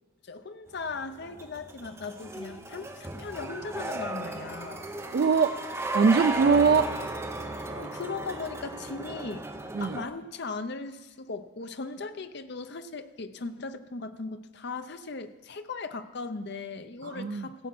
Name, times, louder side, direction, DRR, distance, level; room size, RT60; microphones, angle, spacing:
voice 1, 0.2-4.9 7.6-9.5 9.8-17.7, left 4 dB, 50° left, 10 dB, 0.6 m, -38 dB
sound 1, 0.8-10.1, right 2 dB, 15° right, 0.7 m, -36 dB
voice 2, 5.1-5.6 5.9-6.9 9.7-10.0 17.0-17.5, right 5 dB, 50° right, 11 dB, 0.3 m, -22 dB
15.5 x 8.2 x 5.9 m, 1.2 s
head